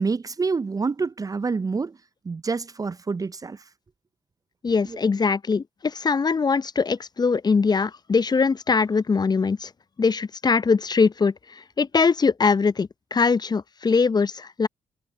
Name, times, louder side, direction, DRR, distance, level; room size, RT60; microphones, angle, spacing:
voice 1, 0.0-2.0 2.2-3.6 4.8-5.0, right 4 dB, 25° right, 0.6 m, -27 dB
voice 2, 4.6-9.7 10.0-11.3 11.8-14.7, left 5 dB, 30° left, 0.8 m, -22 dB
figure-of-eight pair, 40°, 14 cm